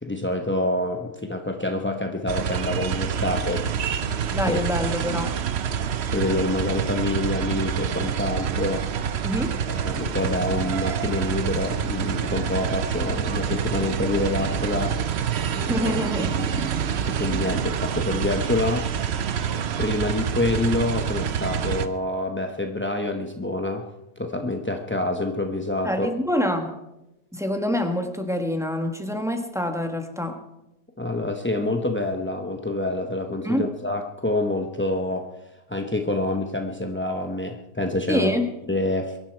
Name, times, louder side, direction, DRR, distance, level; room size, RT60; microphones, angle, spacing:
voice 1, 0.0-3.7 4.4-4.6 5.1-5.3 6.1-8.9 9.7-15.0 15.8-16.7 17.1-18.9 19.1-23.8 24.2-26.1 31.0-35.3 35.7-38.3 38.7-39.2, left 2 dB, 15° left, 4 dB, 0.4 m, -27 dB
sound 1, 2.3-21.9, right 8 dB, 55° right, 0.7 m, -27 dB
voice 2, 4.3-5.4 9.2-9.6 15.6-16.3 25.8-26.8 27.3-30.4 33.4-33.7 38.1-38.5, left 1 dB, ahead, 4 dB, 1.1 m, -26 dB
23.0 x 11.0 x 4.5 m, 0.92 s
omnidirectional pair, 1.8 m